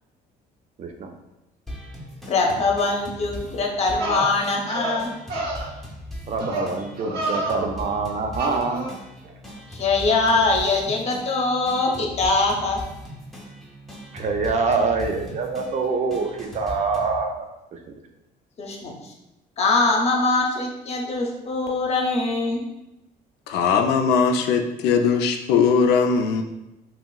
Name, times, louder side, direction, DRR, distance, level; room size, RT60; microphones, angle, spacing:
voice 1, 0.8-1.1 6.3-8.9 9.2-9.3 14.1-17.4 17.7-17.8, right 4 dB, 45° right, 4 dB, 0.5 m, -25 dB
sound 1, 1.7-17.2, equal, ahead, 0.6 m, -39 dB
voice 2, 2.3-5.1 9.7-12.8 18.6-19.1 19.6-22.6, left 3 dB, 40° left, 1 dB, 0.6 m, -22 dB
sound 2, 3.5-3.6 4.0-4.3 4.7-5.0 5.3-5.7 6.4-6.7 7.0-7.6 8.4-8.9, right 1 dB, 70° right, 0.9 m, -28 dB
voice 3, 23.5-26.4, left 6 dB, 80° left, 5 dB, 0.4 m, -20 dB
2.9 x 2.9 x 2.3 m, 0.93 s
cardioid pair, 110°, 17 cm